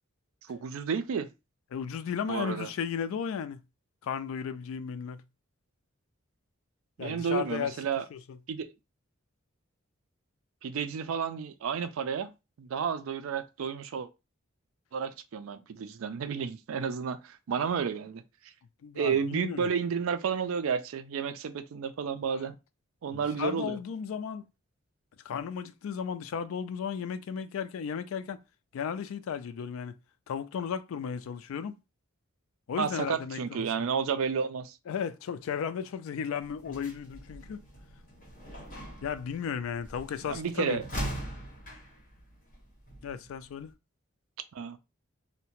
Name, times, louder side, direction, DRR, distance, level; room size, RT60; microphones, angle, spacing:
voice 1, 0.5-1.3 2.3-2.7 7.0-8.0 8.5-8.7 10.6-12.3 12.6-14.1 14.9-18.2 18.9-22.6 23.0-23.8 32.8-34.8 40.3-40.8 44.5-44.8, right 6 dB, 80° right, 0.4 m, -31 dB
voice 2, 1.7-3.6 4.0-5.2 7.0-7.8 8.1-8.4 18.8-19.7 22.2-22.3 23.1-24.4 25.2-28.4 28.7-30.0 30.3-31.7 32.7-33.9 34.9-37.6 39.0-40.8 43.0-43.7, left 7 dB, 80° left, 0.3 m, -35 dB
sound 1, 36.4-43.7, right 1 dB, 40° left, 1.0 m, -42 dB
2.7 x 2.1 x 2.9 m
head